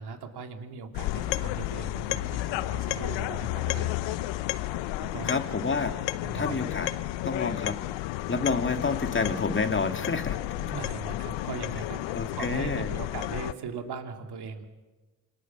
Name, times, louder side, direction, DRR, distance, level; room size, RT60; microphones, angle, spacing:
voice 1, 0.0-4.2 4.5-5.3 6.2-6.6 10.6-14.7, right 5 dB, 60° right, 5 dB, 2.9 m, -39 dB
sound 1, 0.9-13.5, left 16 dB, 70° left, 0.8 m, -32 dB
voice 2, 5.2-5.9 6.3-6.9 7.2-7.8 8.3-10.4 12.1-12.9, left 4 dB, 25° left, 6 dB, 2.5 m, -28 dB
26.5 x 19.5 x 6.2 m, 1.2 s
hypercardioid pair, 55°, 45 cm